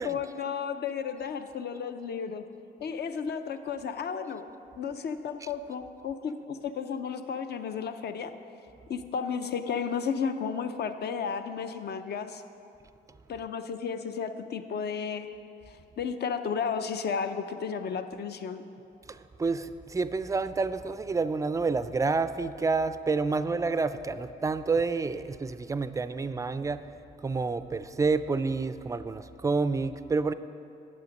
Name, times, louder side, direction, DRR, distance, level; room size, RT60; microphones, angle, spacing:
voice 1, 0.0-2.4 2.8-4.5 4.8-8.3 8.9-12.4 13.3-15.3 15.7-18.6, left 6 dB, 55° left, 9 dB, 0.6 m, -33 dB
voice 2, 19.1-26.8 27.2-30.3, right 4 dB, 15° right, 13 dB, 0.3 m, -29 dB
9.5 x 7.3 x 5.2 m, 2.9 s
cardioid pair, 90°, 20 cm